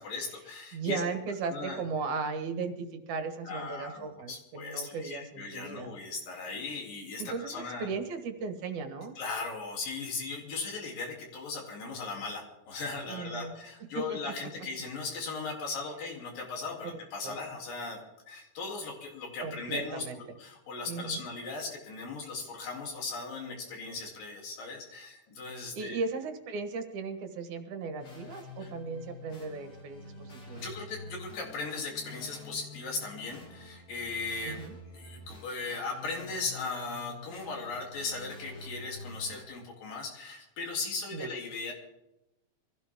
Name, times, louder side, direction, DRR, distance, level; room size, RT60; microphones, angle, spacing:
voice 1, 0.0-1.0 1.5-1.8 3.4-7.9 9.2-18.0 18.3-26.0 28.6-28.7 30.6-34.6 34.9-41.7, left 4 dB, 90° left, 0 dB, 4.7 m, -38 dB
voice 2, 0.7-5.9 7.2-9.1 13.1-13.6 13.8-14.2 16.8-17.0 17.2-17.4 19.4-20.4 20.9-21.2 25.7-30.6 34.4-34.8 41.1-41.3, right 4 dB, 65° right, 7 dB, 2.7 m, -36 dB
sound 1, 28.0-39.4, left 2 dB, 65° left, 5.7 m, -48 dB
23.5 x 16.0 x 3.6 m, 0.93 s
omnidirectional pair, 3.8 m